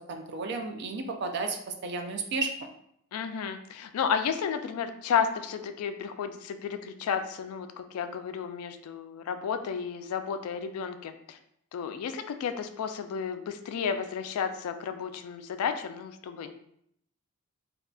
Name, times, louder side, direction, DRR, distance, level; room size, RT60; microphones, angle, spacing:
voice 1, 0.1-2.5, right 3 dB, 50° right, 5 dB, 0.4 m, -33 dB
voice 2, 3.1-11.4 11.7-16.5, left 7 dB, 75° left, 9 dB, 0.3 m, -32 dB
3.6 x 2.4 x 2.2 m, 0.71 s
head